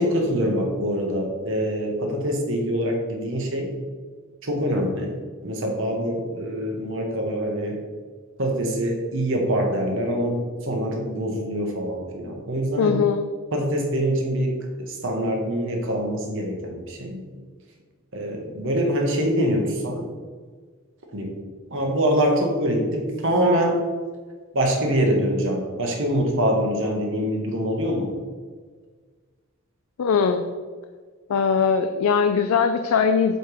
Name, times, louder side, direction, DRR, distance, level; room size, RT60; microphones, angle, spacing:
voice 1, 0.0-3.7 4.4-5.2 5.4-7.8 8.4-13.0 13.5-17.3 18.1-20.1 21.1-21.4 21.7-23.8 24.5-28.2, equal, 60° right, 1 dB, 1.3 m, -24 dB
voice 2, 12.8-13.3 30.0-30.4 31.3-33.4, left 6 dB, 70° left, 7 dB, 0.4 m, -20 dB
8.0 x 3.5 x 4.8 m, 1.5 s
head